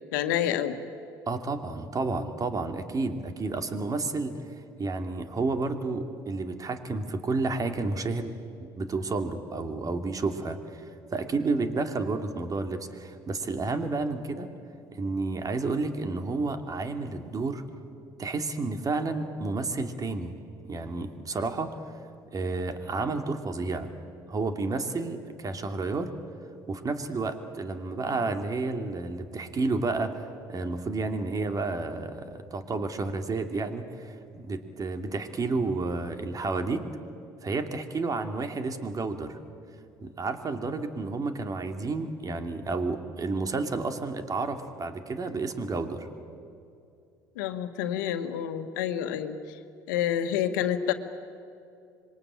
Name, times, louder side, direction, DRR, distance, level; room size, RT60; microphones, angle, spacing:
voice 1, 0.1-0.8 47.3-49.6 49.9-50.9, left 10 dB, 80° left, 8 dB, 1.5 m, -28 dB
voice 2, 1.3-8.3 8.6-14.5 14.9-17.6 18.2-20.3 20.7-21.8 22.3-23.9 24.3-26.1 26.7-30.2 30.5-36.9 37.4-39.4 40.0-46.1, right 3 dB, 35° right, 7 dB, 2.7 m, -31 dB
26.0 x 23.0 x 8.8 m, 2.6 s
hypercardioid pair, 65°, 10 cm